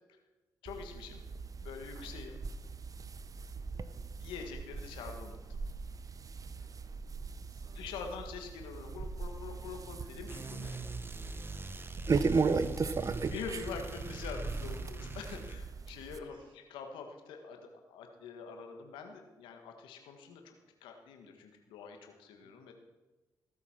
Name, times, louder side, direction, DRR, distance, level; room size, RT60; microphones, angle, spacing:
voice 1, 0.6-1.2 1.6-2.4 4.2-5.6 7.7-10.8 12.1-12.5 13.3-22.7, left 5 dB, 90° left, 4 dB, 1.7 m, -45 dB
sound 1, 0.7-16.2, right 4 dB, 45° right, 0.9 m, -37 dB
voice 2, 7.4-8.2 10.0-10.3 12.1-13.3 16.2-16.6 22.4-22.5, right 3 dB, 75° right, 0 dB, 4.1 m, -58 dB
sound 2, 10.3-15.6, right 2 dB, 30° right, 1.4 m, -43 dB
16.5 x 8.1 x 5.9 m, 1.2 s
supercardioid pair, 55°, 8 cm